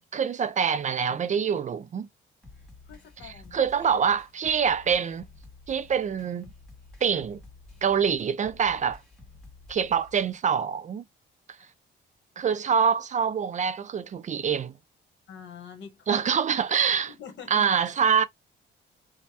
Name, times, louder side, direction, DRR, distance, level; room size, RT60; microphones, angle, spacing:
voice 1, 0.0-2.1 3.2-5.3 5.7-6.5 7.0-7.4 7.8-9.0 9.7-11.0 12.4-14.7 16.1-17.1 17.5-18.2, right 7 dB, 40° right, 0.4 m, -25 dB
sound 1, 2.4-10.4, left 3 dB, 5° left, 1.9 m, -51 dB
voice 2, 2.9-3.9 15.3-16.2 17.0-17.6, left 7 dB, 65° left, 1.1 m, -45 dB
3.2 x 2.1 x 2.7 m
cardioid pair, 90°, 20 cm